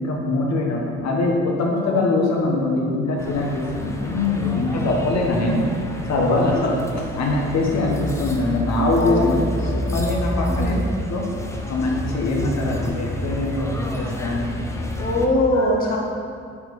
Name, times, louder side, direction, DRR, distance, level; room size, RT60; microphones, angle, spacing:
voice 1, 0.0-5.7 6.0-6.7 7.2-10.8 11.1-11.3 11.7-14.5 15.5-15.7, left 2 dB, 60° left, -1 dB, 1.5 m, -22 dB
sound 1, 3.2-15.3, equal, 10° left, 0.8 m, -29 dB
voice 2, 8.9-9.3 9.6-9.8 10.5-10.9 15.0-16.0, left 1 dB, 30° left, -2 dB, 1.1 m, -23 dB
8.6 x 3.3 x 5.4 m, 2.2 s
cardioid pair, 90°, 30 cm